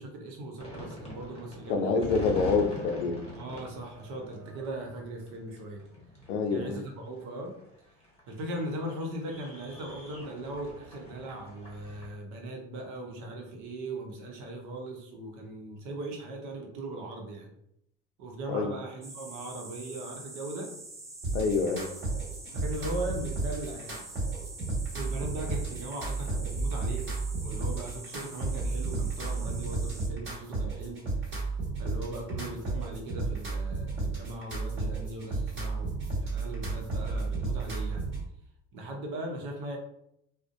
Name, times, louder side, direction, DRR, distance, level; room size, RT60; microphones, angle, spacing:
voice 1, 0.0-2.1 3.3-5.8 6.5-7.5 8.3-17.5 18.2-20.7 22.5-24.1 24.9-27.1 27.4-31.0 31.8-35.9 36.2-38.1 38.7-39.8, right 1 dB, 65° right, 2 dB, 0.8 m, -39 dB
sound 1, 0.6-12.1, left 2 dB, 15° left, 1.1 m, -44 dB
voice 2, 1.7-3.2 6.3-6.8 18.5-18.7 21.3-21.9, left 4 dB, 80° left, 5 dB, 0.5 m, -27 dB
sound 2, 19.0-30.1, right 2 dB, 10° right, 0.3 m, -46 dB
sound 3, 21.2-38.2, right 3 dB, 35° right, 1.4 m, -32 dB
2.5 x 2.1 x 2.5 m, 0.77 s
hypercardioid pair, 75°, 36 cm